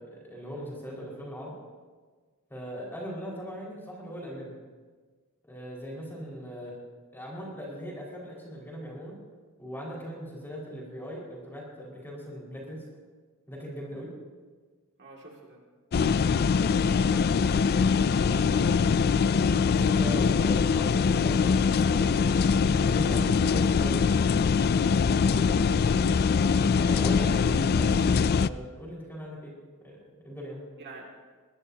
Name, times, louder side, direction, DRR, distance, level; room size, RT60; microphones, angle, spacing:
voice 1, 0.0-1.6 2.5-4.5 5.4-6.8 7.1-9.2 9.6-12.8 13.5-14.1 18.2-18.5 19.6-24.3 25.2-25.4 26.7-29.5 29.8-30.6, equal, 10° left, -4 dB, 5.0 m, -39 dB
voice 2, 15.0-15.6 16.0-19.3 30.8-31.2, right 2 dB, 50° right, -2 dB, 2.4 m, -48 dB
sound 1, 15.9-28.5, left 5 dB, 45° left, 0.4 m, -23 dB
21.5 x 19.5 x 2.8 m, 1.5 s
head